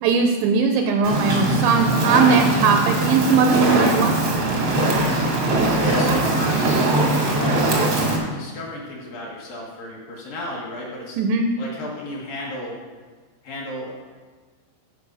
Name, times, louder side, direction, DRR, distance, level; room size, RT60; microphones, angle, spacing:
voice 1, 0.0-4.3 11.2-11.5, right 5 dB, 85° right, 4 dB, 2.6 m, -19 dB
Fire, 1.0-8.2, right 2 dB, 70° right, 1.1 m, -21 dB
voice 2, 5.5-7.6 8.3-11.2 11.6-12.8 13.4-13.9, left 1 dB, 60° left, -3 dB, 2.7 m, -33 dB
13.5 x 5.2 x 5.5 m, 1.4 s
omnidirectional pair, 5.4 m